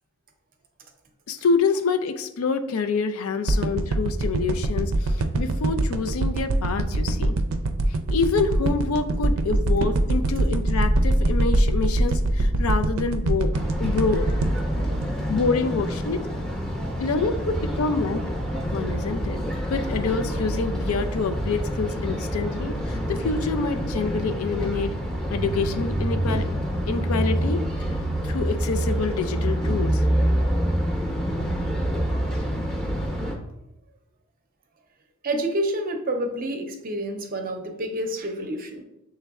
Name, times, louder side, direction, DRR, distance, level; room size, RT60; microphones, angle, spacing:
voice 1, 1.3-7.4 8.1-13.5 13.8-14.3 15.3-16.2 17.0-18.3 18.7-19.4 19.7-25.0 25.3-26.5 26.9-27.6 28.2-30.0, left 4 dB, 85° left, 9 dB, 0.4 m, -26 dB
sound 1, 3.5-15.8 16.2-16.3, right 2 dB, 85° right, 0.4 m, -24 dB
sound 2, 9.4-15.5, equal, 40° left, 0.7 m, -26 dB
sound 3, 13.5-33.3, equal, 5° left, 0.7 m, -27 dB
voice 2, 35.2-38.8, right 1 dB, 40° right, 5 dB, 0.6 m, -28 dB
6.8 x 3.2 x 2.3 m, 0.89 s
head